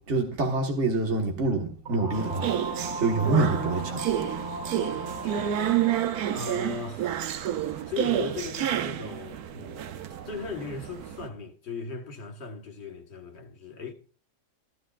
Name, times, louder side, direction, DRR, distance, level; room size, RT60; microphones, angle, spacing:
voice 1, 0.0-4.0, right 3 dB, 45° right, 1.8 m, -26 dB
sound 1, 1.9-6.4, right 2 dB, 30° right, 2.1 m, -36 dB
sound 2, 2.1-11.3, right 11 dB, 70° right, 1.2 m, -30 dB
voice 2, 5.2-5.7 6.3-7.2 7.9-9.9 10.2-13.9, left 5 dB, 45° left, 1.6 m, -38 dB
14.0 x 13.0 x 2.5 m
omnidirectional pair, 1.7 m